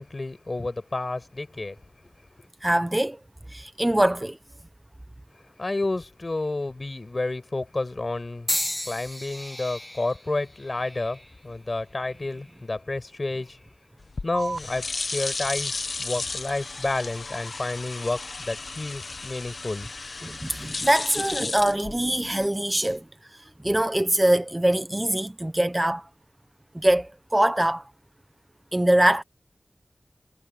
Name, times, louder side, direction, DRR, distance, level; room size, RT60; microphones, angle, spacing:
voice 1, 0.0-1.8 2.0-2.1 5.6-8.5 8.9-13.6 14.2-19.9, left 2 dB, 50° left, 7.6 m, -30 dB
voice 2, 2.6-3.2 3.5-4.4 20.2-23.0 23.6-26.1 26.7-27.8 28.7-29.2, right 1 dB, 20° right, 1.2 m, -23 dB
sound 1, 8.5-12.6 13.3-13.7 14.7-14.9, left 1 dB, 15° left, 1.5 m, -35 dB
sound 2, 14.0-22.5, left 3 dB, 80° left, 1.6 m, -34 dB
sound 3, 14.3-21.3, right 4 dB, 90° right, 3.5 m, -44 dB
wide cardioid pair, 60°, 0 cm